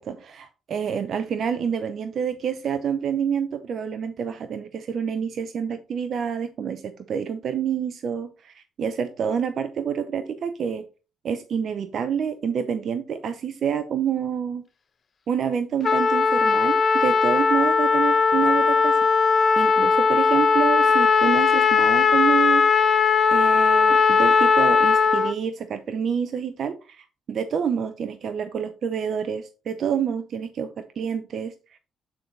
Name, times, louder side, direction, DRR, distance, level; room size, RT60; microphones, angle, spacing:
voice 1, 0.0-10.8 11.2-14.6 15.3-19.0 19.6-22.6 23.3-31.8, right 7 dB, 60° right, 9 dB, 0.7 m, -28 dB
Trumpet, 15.8-25.3, left 5 dB, 45° left, 0.9 m, -18 dB
8.9 x 4.0 x 4.1 m, 0.32 s
supercardioid pair, 65°, 0 cm